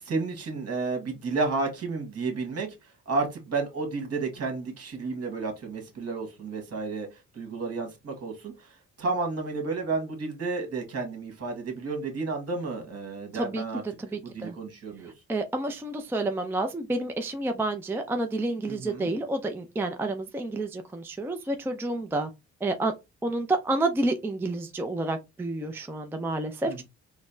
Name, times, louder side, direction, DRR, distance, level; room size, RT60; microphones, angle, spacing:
voice 1, 0.0-13.8 14.1-15.1 18.7-19.1 26.7-26.8, right 3 dB, 55° right, 1.5 m, -32 dB
voice 2, 13.3-13.6 14.0-14.5 15.3-22.3 22.6-22.9 23.2-26.8, right 2 dB, 10° right, 0.4 m, -29 dB
4.0 x 2.1 x 2.6 m
cardioid pair, 90°, 30 cm